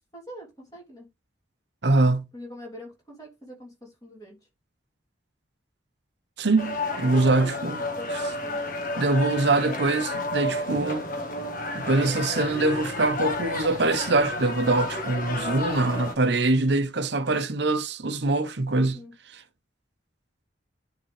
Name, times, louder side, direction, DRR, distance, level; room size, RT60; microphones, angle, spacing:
voice 1, 0.1-1.1 2.3-4.4 6.9-8.6 18.8-19.1, equal, 20° left, 3.1 m, -43 dB
voice 2, 1.8-2.3 6.4-7.8 9.0-11.1 11.7-19.0 19.3-19.4, right 2 dB, 65° right, 0.9 m, -23 dB
sound 1, 6.6-16.1, left 2 dB, 45° left, 1.5 m, -31 dB
10.0 x 3.8 x 3.3 m
head